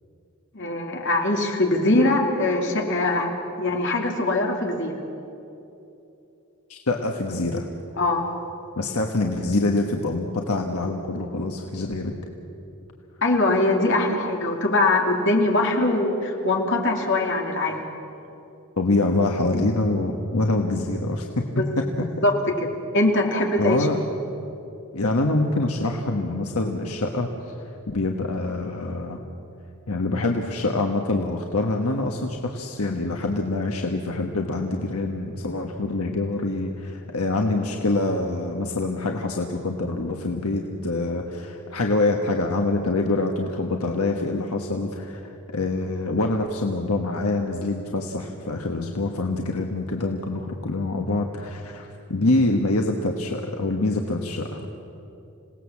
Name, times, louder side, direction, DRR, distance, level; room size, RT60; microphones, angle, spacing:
voice 1, 0.5-3.3 3.6-5.0 8.0-8.2 13.2-17.8 21.6-21.7 22.2-23.9, left 2 dB, 55° left, 1 dB, 2.8 m, -22 dB
voice 2, 6.7-7.7 8.8-12.1 18.8-22.1 23.6-24.0 24.9-27.3 27.9-29.2 29.9-54.8, left 2 dB, 75° left, 2 dB, 1.4 m, -25 dB
27.0 x 18.0 x 7.3 m, 2.8 s
head